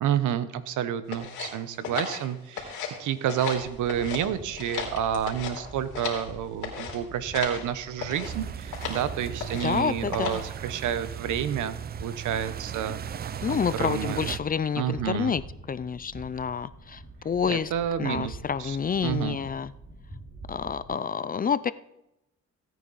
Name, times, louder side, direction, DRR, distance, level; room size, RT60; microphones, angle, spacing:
voice 1, 0.0-2.7 3.0-14.3 14.8-15.3 17.5-18.3 18.6-18.8 19.0-19.4, right 9 dB, 80° right, 13 dB, 1.0 m, -29 dB
sound 1, 1.1-3.0 3.2-4.2 4.5-6.3 6.6-7.0 7.3-7.6 8.0-8.3 8.7-9.0 9.4-9.8 10.1-10.5, left 6 dB, 75° left, 3.3 m, -35 dB
sound 2, 3.5-20.9, right 1 dB, 50° right, 5.4 m, -46 dB
sound 3, 8.2-14.4, right 9 dB, 35° right, 0.4 m, -37 dB
voice 2, 9.6-10.4 13.4-15.4 15.7-17.7 18.0-19.7 20.5-21.7, left 6 dB, 30° left, 16 dB, 0.5 m, -28 dB
16.5 x 9.2 x 4.1 m, 0.88 s
cardioid pair, 90°, 30 cm